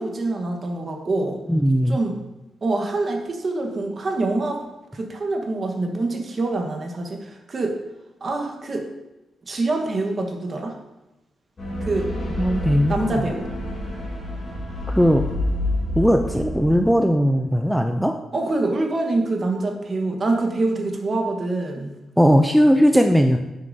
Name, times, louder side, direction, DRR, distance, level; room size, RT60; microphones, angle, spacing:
voice 1, 0.0-1.4 1.9-2.2 2.6-4.6 4.9-7.8 8.2-8.9 9.5-10.8 11.8-12.1 12.9-13.5 18.3-21.9, right 2 dB, 35° right, 2 dB, 1.2 m, -25 dB
voice 2, 1.5-2.0 12.4-13.2 14.9-15.2 15.9-18.1 22.2-23.4, equal, ahead, 4 dB, 0.4 m, -18 dB
sound 1, 11.6-16.8, left 1 dB, 35° left, 2.4 m, -28 dB
10.0 x 6.7 x 2.7 m, 0.97 s
wide cardioid pair, 140°, 0 cm